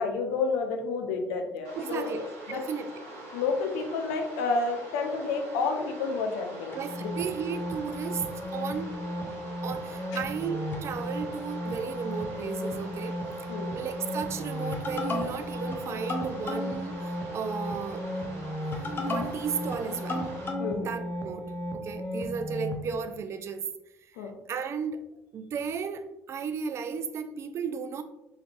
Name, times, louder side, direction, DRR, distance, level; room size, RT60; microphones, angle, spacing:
voice 1, 0.0-2.1 2.5-2.6 3.3-7.1 10.1-10.2 13.5-13.7 20.6-20.9 24.2-24.4, left 4 dB, 65° left, 4 dB, 0.5 m, -30 dB
sound 1, 1.6-20.5, right 1 dB, 75° right, 1.0 m, -44 dB
voice 2, 1.7-2.9 6.7-8.2 8.5-9.3 9.6-13.2 13.7-18.1 18.9-20.3 20.8-23.6 24.5-25.0 25.3-28.0, right 6 dB, 40° right, 9 dB, 0.3 m, -34 dB
sound 2, 6.7-22.8, left 1 dB, 30° left, 0.7 m, -34 dB
3.3 x 3.1 x 2.4 m, 0.90 s
figure-of-eight pair, 55°, 7 cm